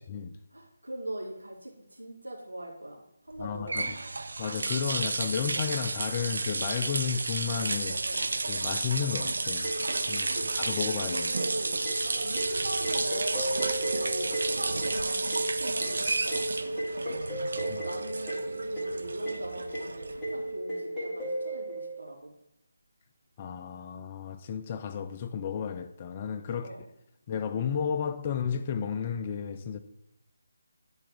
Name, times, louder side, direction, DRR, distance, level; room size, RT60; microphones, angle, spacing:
voice 1, 0.5-3.9 7.8-8.2 10.1-10.5 11.1-11.8 12.0-16.8 17.6-22.3 26.5-26.8, right 1 dB, 75° right, 2.3 m, -41 dB
voice 2, 3.4-4.0 4.4-8.0 8.5-9.7 10.1-10.3 10.6-11.3 17.7-17.8 23.4-26.7 27.3-29.8, left 7 dB, 25° left, 0.4 m, -32 dB
sound 1, 3.4-20.4, right 3 dB, 55° right, 0.5 m, -32 dB
sound 2, 9.6-22.0, right 1 dB, ahead, 2.0 m, -35 dB
9.6 x 4.3 x 3.5 m
figure-of-eight pair, 150°, 0 cm